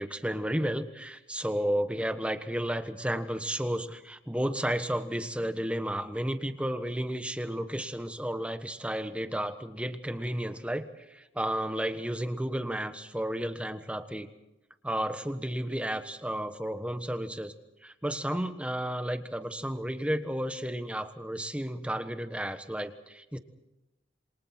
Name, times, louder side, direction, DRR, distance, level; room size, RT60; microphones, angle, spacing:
voice 1, 0.0-14.3 14.8-17.5 17.8-23.4, equal, 5° right, 9 dB, 1.3 m, -32 dB
28.0 x 25.0 x 4.5 m, 0.95 s
head